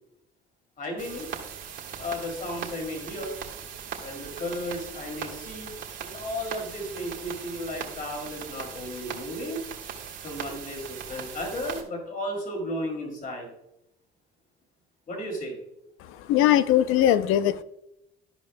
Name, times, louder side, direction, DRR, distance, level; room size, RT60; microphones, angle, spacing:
voice 1, 0.8-1.3 2.0-3.3 4.0-9.6 10.2-13.5 15.1-15.6, left 1 dB, 40° left, 2.6 m, -34 dB
sound 1, 1.0-11.8, right 8 dB, 65° right, 1.8 m, -39 dB
voice 2, 16.3-17.6, left 11 dB, 80° left, 0.5 m, -20 dB
13.5 x 5.2 x 2.2 m
cardioid pair, 105°, 21 cm